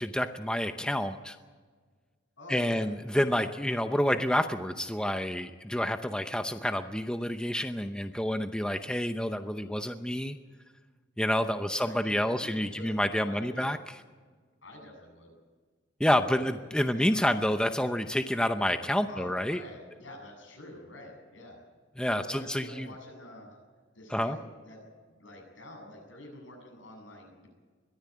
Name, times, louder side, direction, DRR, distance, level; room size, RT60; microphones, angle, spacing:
voice 1, 0.0-1.4 2.5-10.4 11.2-13.8 16.0-19.6 22.0-22.9 24.1-24.4, equal, 5° left, 8 dB, 0.7 m, -28 dB
voice 2, 2.4-2.9 11.8-13.7 14.6-15.3 16.1-17.6 19.1-21.6 22.1-23.6 23.9-27.5, left 1 dB, 80° left, 2 dB, 7.9 m, -48 dB
22.0 x 14.5 x 8.6 m, 1.5 s
head